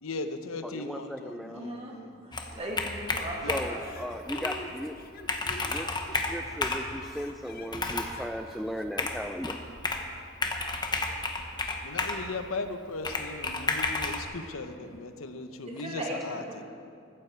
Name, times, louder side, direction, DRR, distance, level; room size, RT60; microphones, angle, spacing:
voice 1, 0.0-2.2 3.4-3.7 11.4-11.5 11.8-16.6, left 3 dB, 80° left, 8 dB, 0.9 m, -38 dB
voice 2, 0.6-1.6 3.5-4.9 5.6-9.6, equal, ahead, 5 dB, 0.4 m, -37 dB
voice 3, 1.5-1.9 2.2-4.2 15.7-16.6, right 1 dB, 30° right, -1 dB, 2.3 m, -38 dB
Computer keyboard, 2.3-3.8 4.3-4.6 5.0-5.1 5.3-6.9 7.7-8.2 9.0-10.1 10.4-12.2 13.0-14.2, left 3 dB, 20° left, 1.0 m, -31 dB
sound 1, 3.2-8.8, left 2 dB, 45° left, 0.9 m, -47 dB
15.0 x 14.5 x 4.6 m, 2.4 s
head